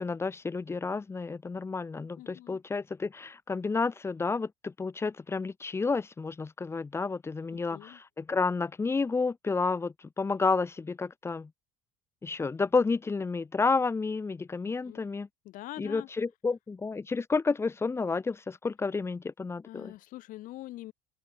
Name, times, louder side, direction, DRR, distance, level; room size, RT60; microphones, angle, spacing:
voice 1, 0.0-11.5 12.2-15.3 15.8-19.9, left 4 dB, 15° left, 0.6 m, -30 dB
voice 2, 2.2-2.6 7.5-8.0 14.6-15.1 15.4-16.1 19.6-20.9, left 16 dB, 60° left, 2.0 m, -44 dB
supercardioid pair, 100°, 15 cm